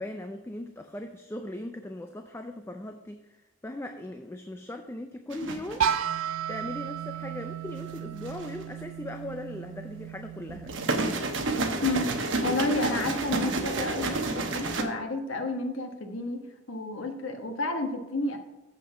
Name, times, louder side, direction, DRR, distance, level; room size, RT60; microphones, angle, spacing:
voice 1, 0.0-3.4 3.6-5.9 6.5-10.7, left 1 dB, 10° left, 6 dB, 0.4 m, -39 dB
sound 1, 5.3-5.9 7.9-8.6 10.5-14.8, right 2 dB, 70° right, 1.0 m, -30 dB
sound 2, 5.8-11.6, right 8 dB, 90° right, 0.4 m, -34 dB
voice 2, 11.8-12.1 12.4-18.4, left 2 dB, 80° left, 4 dB, 1.3 m, -31 dB
7.4 x 6.1 x 5.8 m, 1.0 s
head